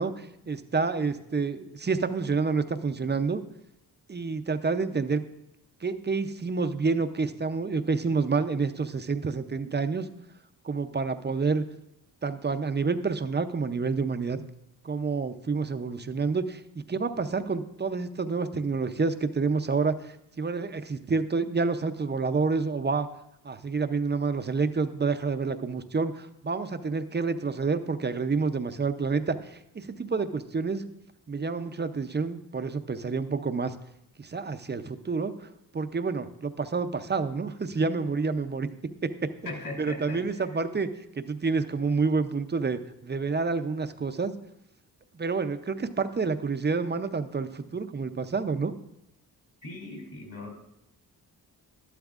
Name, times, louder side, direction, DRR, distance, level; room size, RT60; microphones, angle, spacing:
voice 1, 0.0-3.4 4.1-5.2 5.8-10.1 10.6-11.6 12.2-14.4 14.8-23.1 23.4-30.9 31.3-33.7 34.2-38.7 39.0-39.3 39.8-40.9 41.1-44.3 45.1-48.7, right 4 dB, 25° right, 9 dB, 0.5 m, -28 dB
voice 2, 39.4-40.6 49.6-50.5, left 2 dB, 55° left, 0 dB, 3.0 m, -39 dB
12.0 x 11.5 x 2.4 m, 0.81 s
cardioid pair, 80°, 39 cm